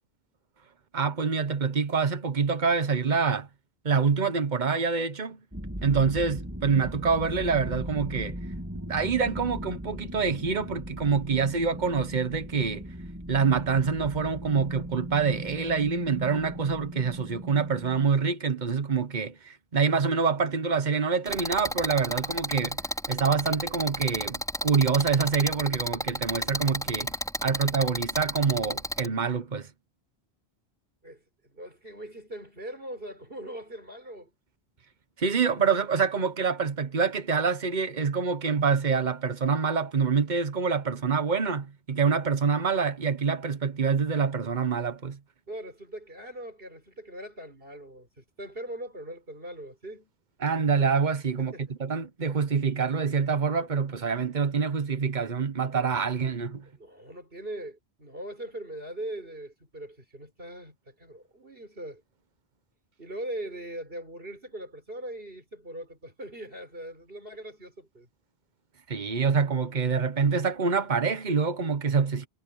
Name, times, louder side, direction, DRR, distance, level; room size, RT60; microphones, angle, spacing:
voice 1, 0.9-3.5 3.8-5.4 5.8-8.4 8.9-12.9 13.3-22.8 23.1-27.1 27.4-29.7 35.2-45.2 50.4-51.5 51.8-56.7 68.9-72.3, right 5 dB, 45° right, 1.4 m, -26 dB
sound 1, 5.5-18.1, equal, 15° right, 6.0 m, -38 dB
sound 2, 21.3-29.1, equal, 5° left, 4.5 m, -32 dB
voice 2, 31.0-34.3 35.5-35.8 45.5-50.1 51.4-51.7 56.7-62.0 63.0-68.1, right 1 dB, 65° right, 6.7 m, -41 dB
omnidirectional pair, 1.0 m